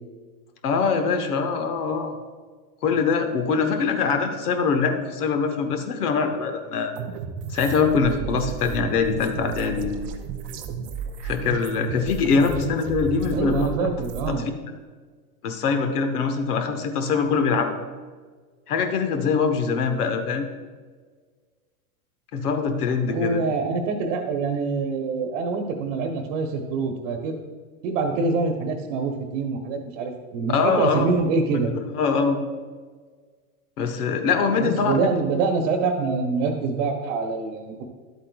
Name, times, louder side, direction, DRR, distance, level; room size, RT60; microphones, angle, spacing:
voice 1, 0.6-2.1 2.8-6.9 7.5-9.9 11.2-13.7 14.3-14.4 15.4-17.7 18.7-20.5 22.3-23.4 30.5-31.1 31.9-32.4 33.8-34.9, left 5 dB, 80° left, 6 dB, 1.2 m, -23 dB
sound 1, 7.0-14.3, right 6 dB, 20° right, 0.3 m, -33 dB
voice 2, 13.3-14.4 23.1-27.4 27.8-31.7 34.6-37.8, right 4 dB, 55° right, 4 dB, 1.1 m, -25 dB
11.0 x 8.2 x 2.3 m, 1.5 s
hypercardioid pair, 120°, 45 cm